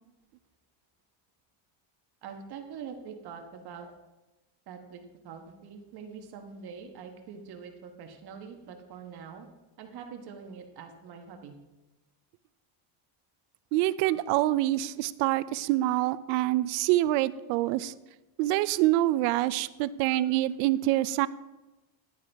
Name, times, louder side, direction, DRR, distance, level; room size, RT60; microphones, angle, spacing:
voice 1, 2.2-3.9 4.7-9.5 9.8-11.5, right 6 dB, 50° right, 4 dB, 1.2 m, -44 dB
voice 2, 13.7-17.9 18.4-21.3, right 15 dB, 85° right, 16 dB, 0.6 m, -26 dB
10.5 x 9.3 x 3.4 m, 1.0 s
cardioid pair, 140°, 49 cm